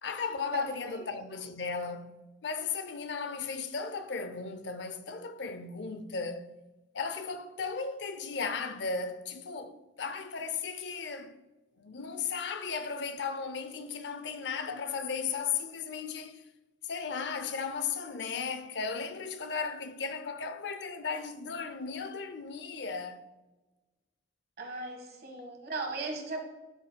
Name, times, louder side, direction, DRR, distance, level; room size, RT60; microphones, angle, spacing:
voice 1, 0.0-6.5 6.9-11.4 11.8-16.4 16.8-23.3 25.4-25.5, left 5 dB, 70° left, 0.5 m, -36 dB
voice 2, 0.5-1.1 24.6-26.4, right 3 dB, 55° right, 1.4 m, -37 dB
12.0 x 4.3 x 2.2 m
head